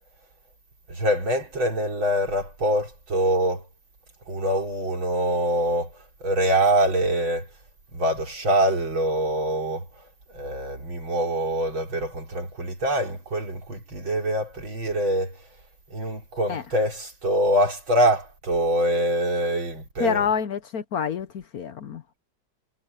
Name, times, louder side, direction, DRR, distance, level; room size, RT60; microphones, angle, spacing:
voice 1, 0.9-3.6 4.3-5.9 6.2-7.5 7.9-9.9 10.3-15.4 15.9-20.3, right 1 dB, 80° right, 5.6 m, -24 dB
voice 2, 20.0-22.0, left 6 dB, 60° left, 1.1 m, -27 dB
omnidirectional pair, 2.1 m